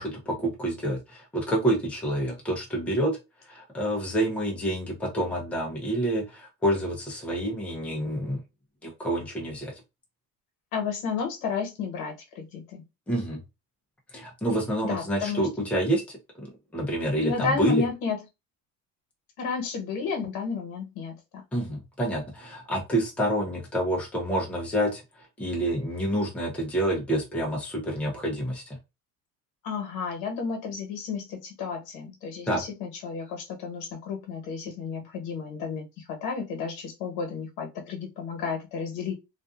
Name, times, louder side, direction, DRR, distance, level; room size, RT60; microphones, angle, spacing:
voice 1, 0.0-3.2 3.5-8.4 8.8-9.7 13.1-13.4 14.1-16.0 16.7-17.8 21.5-25.0 25.4-28.6 32.5-32.6, right 1 dB, 5° left, 0.6 m, -28 dB
voice 2, 10.7-12.8 14.8-15.5 17.2-18.2 19.4-21.2 29.6-39.1, left 5 dB, 75° left, 1.1 m, -32 dB
2.5 x 2.4 x 2.4 m
cardioid pair, 170°, 35 cm